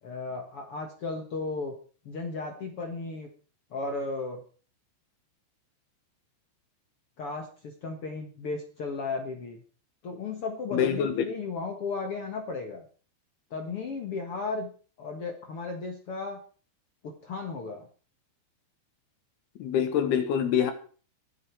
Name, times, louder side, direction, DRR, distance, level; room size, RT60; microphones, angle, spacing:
voice 1, 0.0-1.7 2.0-3.3 3.7-4.4 7.2-9.6 10.0-12.9 13.5-14.7 15.0-16.4 17.0-17.9, left 3 dB, 90° left, 1.2 m, -35 dB
voice 2, 10.7-11.3 19.6-20.7, left 8 dB, 65° left, 3.1 m, -25 dB
21.0 x 9.4 x 4.6 m
omnidirectional pair, 5.4 m